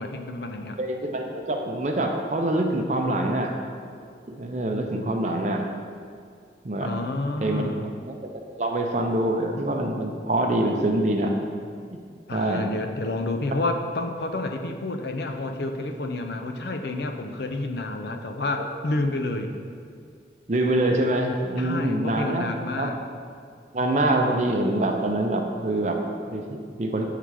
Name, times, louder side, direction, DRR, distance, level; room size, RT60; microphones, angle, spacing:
voice 1, 0.0-0.8 6.8-7.9 12.3-19.5 21.6-23.0, left 2 dB, 65° left, 6 dB, 0.5 m, -29 dB
voice 2, 0.8-3.6 4.3-5.6 6.6-6.9 7.4-7.6 8.1-8.3 8.6-11.3 12.3-12.7 18.6-18.7 20.5-22.5 22.7-22.9 23.7-27.0, right 1 dB, 40° right, 3 dB, 0.6 m, -25 dB
7.0 x 3.8 x 4.7 m, 2.3 s
head